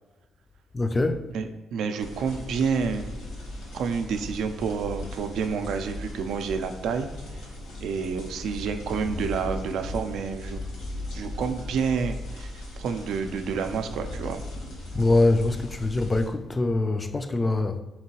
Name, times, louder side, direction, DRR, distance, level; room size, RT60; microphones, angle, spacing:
voice 1, 0.7-1.2 14.9-17.8, left 2 dB, 25° left, 0.3 m, -23 dB
voice 2, 1.3-3.1 3.7-7.1 7.8-10.6 11.1-14.4, right 6 dB, 75° right, 0.4 m, -29 dB
sound 1, 2.0-16.3, left 1 dB, 90° left, 1.2 m, -38 dB
4.5 x 2.9 x 2.8 m
cardioid pair, 90°, 0 cm